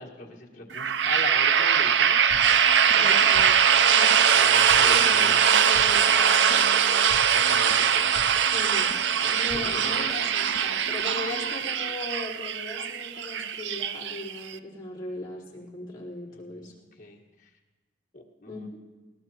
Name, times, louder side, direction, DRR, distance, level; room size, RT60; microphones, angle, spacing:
voice 1, 0.0-2.5 2.8-3.2 4.3-5.4 7.3-8.1 9.2-10.6 16.3-17.5 18.1-18.7, left 2 dB, 45° left, -1 dB, 1.5 m, -41 dB
sound 1, 0.7-14.5, right 8 dB, 80° right, 0.5 m, -22 dB
sound 2, 2.3-11.9, equal, 65° left, 2.0 m, -44 dB
voice 2, 2.9-4.2 4.9-7.1 8.5-8.9 9.2-16.7 18.5-18.7, left 2 dB, 25° left, -7 dB, 3.8 m, -38 dB
21.0 x 18.5 x 2.9 m, 1.2 s
head